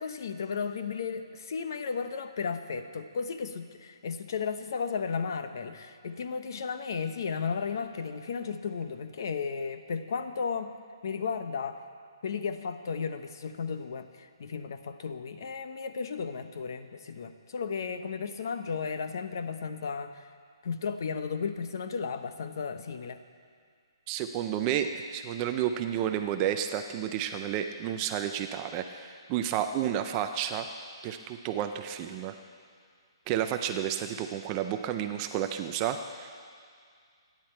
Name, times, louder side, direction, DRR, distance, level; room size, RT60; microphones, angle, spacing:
voice 1, 0.0-10.7 11.0-11.8 12.2-20.2 20.6-23.2, left 5 dB, 45° left, 9 dB, 0.9 m, -34 dB
voice 2, 24.1-30.7 31.0-32.3 33.3-36.5, right 10 dB, 15° right, 7 dB, 0.4 m, -31 dB
27.0 x 10.5 x 4.5 m, 2.1 s
hypercardioid pair, 175°, 3 cm